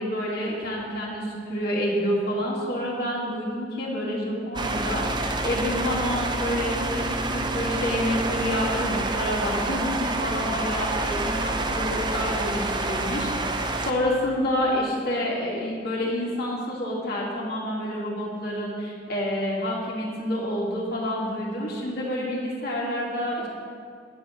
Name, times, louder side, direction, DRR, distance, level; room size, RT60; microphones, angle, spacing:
voice 1, 0.0-13.4 13.8-23.5, left 1 dB, 55° left, -4 dB, 2.4 m, -28 dB
sound 1, 4.5-13.9, right 2 dB, 25° right, 0.6 m, -28 dB
9.9 x 6.3 x 7.8 m, 2.3 s
head